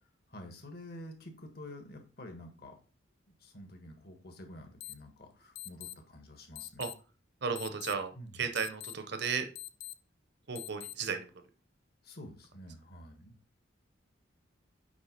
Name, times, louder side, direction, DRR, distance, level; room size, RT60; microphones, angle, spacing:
voice 1, 0.3-2.8 3.3-6.9 8.1-8.5 12.0-13.3, left 1 dB, 50° left, 4 dB, 1.5 m, -49 dB
sound 1, 4.8-4.9 5.5-5.9 6.5-6.9 7.5-7.9 8.5-8.9 9.5-9.9 10.5-10.9, left 16 dB, 85° left, 0.5 m, -43 dB
voice 2, 7.4-9.4 10.5-11.3, right 5 dB, 55° right, 7 dB, 0.9 m, -34 dB
8.3 x 3.4 x 5.1 m, 0.36 s
head